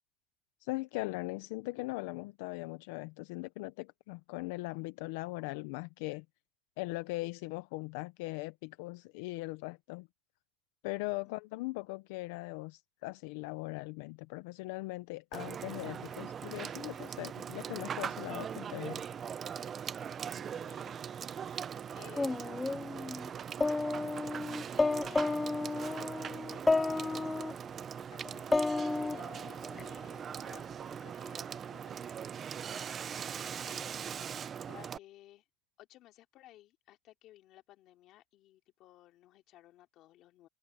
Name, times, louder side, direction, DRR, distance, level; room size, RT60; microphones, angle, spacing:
voice 1, 0.6-6.2 6.8-10.1 10.8-19.0, left 22 dB, 80° left, 0.6 m, -40 dB
voice 2, 11.1-11.4 20.3-21.1 21.9-23.3 24.7-27.2 28.1-32.1 33.7-35.4 35.8-40.5, left 14 dB, 50° left, 2.9 m, -57 dB
Water / Water tap faucet / Sink (filling or washing), 15.3-35.0, right 8 dB, 30° right, 0.7 m, -41 dB
sound 1, 22.2-23.3 23.6-27.5 28.2-29.8, left 3 dB, 10° left, 0.4 m, -32 dB
supercardioid pair, 135°, 0 cm